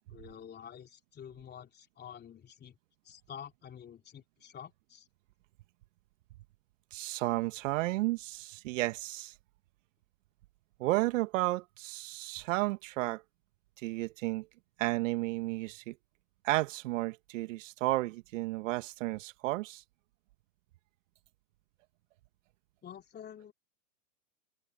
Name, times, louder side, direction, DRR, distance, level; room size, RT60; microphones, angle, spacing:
voice 1, 0.1-2.7 3.0-5.1 22.8-23.5, left 9 dB, 20° left, 3.3 m, -48 dB
voice 2, 6.9-9.3 10.8-13.2 13.8-14.5 14.8-16.0 16.4-19.8, right 19 dB, 50° right, 1.9 m, -32 dB
hypercardioid pair, 115°, 48 cm